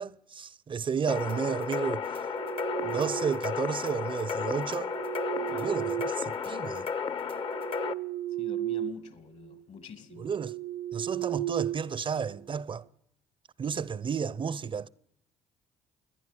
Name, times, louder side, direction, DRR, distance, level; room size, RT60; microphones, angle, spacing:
voice 1, 0.0-2.1 2.8-4.9 5.6-6.9 10.2-10.6 10.9-12.9 13.6-14.9, right 6 dB, 40° right, 0.7 m, -32 dB
sound 1, 1.1-7.9, left 6 dB, 40° left, 1.1 m, -33 dB
sound 2, 2.1-3.6 4.6-6.7 7.2-9.1 9.4-9.6 10.1-12.5, right 14 dB, 85° right, 0.8 m, -35 dB
voice 2, 8.4-10.3, left 7 dB, 60° left, 2.6 m, -46 dB
28.5 x 11.0 x 9.1 m
hypercardioid pair, 55°, 14 cm